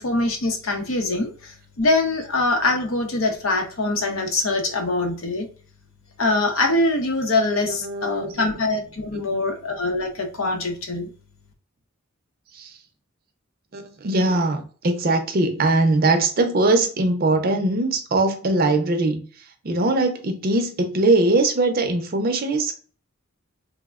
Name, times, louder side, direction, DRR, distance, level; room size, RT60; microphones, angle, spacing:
voice 1, 0.0-5.5 6.2-11.1, left 2 dB, 75° left, 0.7 m, -23 dB
voice 2, 7.6-8.4 9.2-9.4 12.5-12.8 13.7-19.2 19.6-22.8, right 2 dB, 45° right, 0.5 m, -21 dB
3.2 x 2.1 x 2.3 m
head